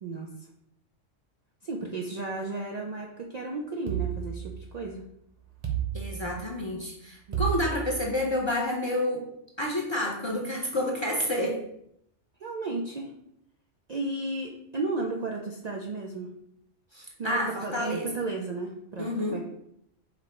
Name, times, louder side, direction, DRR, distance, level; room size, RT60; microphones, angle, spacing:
voice 1, 0.0-0.5 1.6-5.0 7.3-7.4 12.4-13.1 13.9-16.3 17.2-19.4, right 3 dB, 90° right, 1 dB, 0.3 m, -34 dB
sound 1, 3.9-5.0 5.6-6.7 7.3-8.4, right 10 dB, 40° right, 0.7 m, -32 dB
voice 2, 5.9-9.3 9.6-11.6 16.9-18.1 19.0-19.4, left 1 dB, 35° left, -2 dB, 0.4 m, -29 dB
5.2 x 2.0 x 4.3 m, 0.75 s
omnidirectional pair, 1.3 m